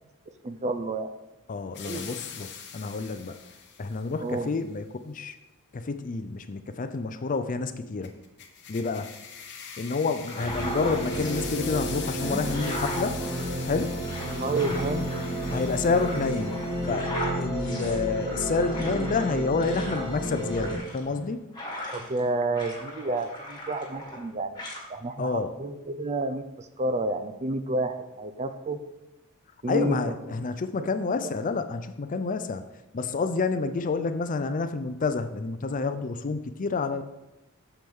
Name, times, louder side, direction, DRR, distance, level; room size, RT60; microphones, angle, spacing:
voice 1, 0.3-1.1 1.8-2.0 4.2-4.5 14.4-15.1 21.9-24.6 24.9-28.8 29.6-30.5 30.8-30.9, right 2 dB, 30° right, 9 dB, 0.5 m, -30 dB
voice 2, 1.5-3.3 3.8-5.3 5.7-8.1 8.7-9.1 9.8-13.2 13.6-13.9 15.5-16.5 16.8-17.1 17.4-21.4 25.2-25.5 29.7-32.6 32.9-37.0, left 4 dB, 40° left, 9 dB, 0.5 m, -29 dB
sound 1, 1.7-4.1 8.0-17.0, left 7 dB, 55° left, 0.9 m, -43 dB
sound 2, 10.2-11.5 12.0-22.2 22.5-24.3 24.6-24.8, left 1 dB, 20° left, 1.7 m, -38 dB
sound 3, 10.4-20.8, right 1 dB, 55° right, 1.7 m, -32 dB
7.6 x 6.9 x 3.6 m, 0.99 s
head